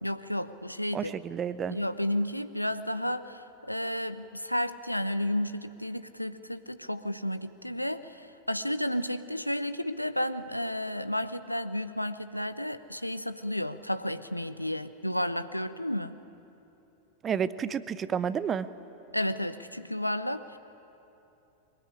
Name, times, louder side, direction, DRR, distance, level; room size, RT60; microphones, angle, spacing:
voice 1, 0.0-1.2 1.7-16.1 19.1-20.6, left 1 dB, 90° left, 12 dB, 0.8 m, -32 dB
voice 2, 0.9-1.8 17.2-18.7, right 7 dB, 25° right, 15 dB, 0.9 m, -30 dB
22.5 x 21.5 x 9.9 m, 3.0 s
figure-of-eight pair, 90°, 0 cm